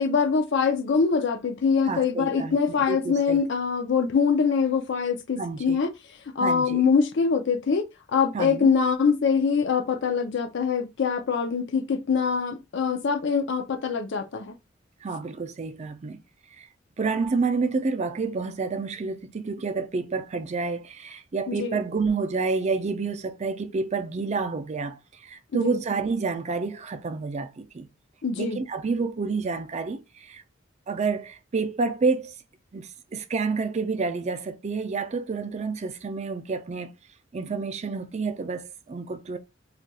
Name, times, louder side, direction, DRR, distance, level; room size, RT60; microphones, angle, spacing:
voice 1, 0.0-5.9 6.4-7.8 8.1-14.5 21.5-21.8 25.6-25.8 28.2-28.6, left 5 dB, 65° left, 0.5 m, -24 dB
voice 2, 1.8-3.4 5.4-5.8 6.4-6.8 8.3-8.7 15.0-16.2 16.6-16.7 17.0-27.9 28.3-30.4 30.9-32.3 32.7-36.9 37.3-39.4, right 4 dB, 35° right, 0.4 m, -29 dB
2.4 x 2.3 x 4.0 m
head